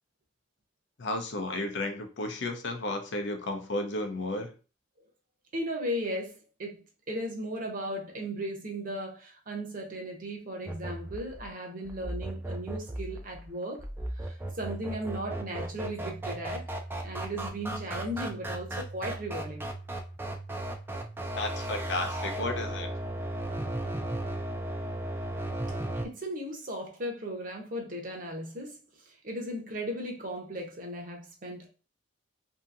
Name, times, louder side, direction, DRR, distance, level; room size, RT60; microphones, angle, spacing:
voice 1, 1.0-4.5 21.3-22.9, left 2 dB, 65° left, 0.6 m, -33 dB
voice 2, 5.5-13.8 14.1-16.7 17.0-19.7 26.0-28.8 29.0-31.7, equal, 45° right, 0.7 m, -36 dB
sound 1, 10.7-26.1, right 1 dB, 10° right, 0.3 m, -36 dB
2.8 x 2.6 x 2.4 m
head